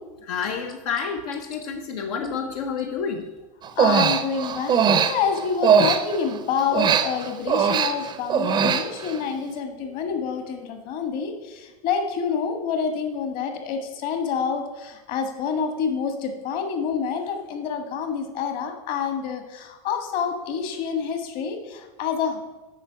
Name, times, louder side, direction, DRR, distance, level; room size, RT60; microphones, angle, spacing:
voice 1, 0.3-3.2, left 6 dB, 80° left, 3 dB, 0.8 m, -29 dB
Human voice, 3.6-6.4 6.7-9.2, right 7 dB, 25° right, 0.5 m, -21 dB
voice 2, 3.8-22.4, left 6 dB, 50° left, 6 dB, 1.5 m, -27 dB
8.7 x 5.2 x 5.7 m, 1.2 s
supercardioid pair, 130°, 18 cm